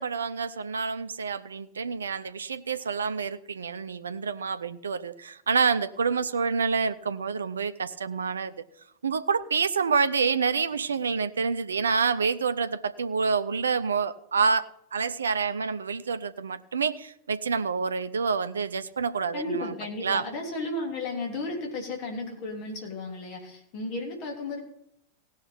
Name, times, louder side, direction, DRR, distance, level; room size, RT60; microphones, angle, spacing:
voice 1, 0.0-8.5 9.0-19.7 20.0-20.2, right 5 dB, 70° right, 13 dB, 0.6 m, -28 dB
voice 2, 19.3-24.6, left 2 dB, 40° left, 1 dB, 3.3 m, -34 dB
17.0 x 6.5 x 5.8 m, 0.76 s
figure-of-eight pair, 90°, 0 cm